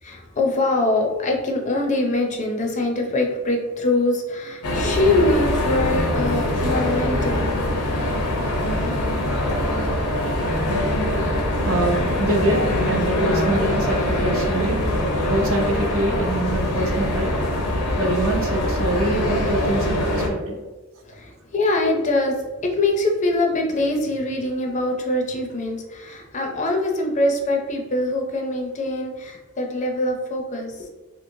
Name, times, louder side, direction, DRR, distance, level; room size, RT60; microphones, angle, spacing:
voice 1, 0.0-7.5 21.0-30.9, left 2 dB, 35° left, 2 dB, 0.4 m, -23 dB
sound 1, 4.6-20.3, left 1 dB, 85° left, 0.6 m, -23 dB
voice 2, 11.6-14.8 15.3-17.3 18.0-20.6, right 2 dB, 65° right, 1 dB, 0.6 m, -25 dB
2.9 x 2.7 x 2.6 m, 1.2 s
head